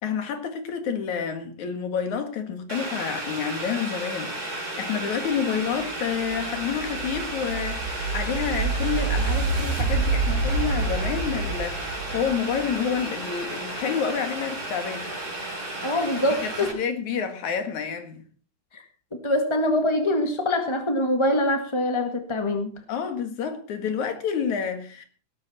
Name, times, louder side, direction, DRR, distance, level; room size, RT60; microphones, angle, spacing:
voice 1, 0.0-15.1 16.4-18.2 22.9-25.1, left 7 dB, 60° left, 3.1 m, -29 dB
Boiling, 2.7-16.7, right 2 dB, 20° right, 4.1 m, -33 dB
sound 1, 5.8-13.0, right 4 dB, 75° right, 4.5 m, -28 dB
voice 2, 15.8-16.7 18.7-18.8 19.2-22.7, left 1 dB, 25° left, 0.6 m, -24 dB
16.5 x 13.5 x 4.2 m
omnidirectional pair, 4.0 m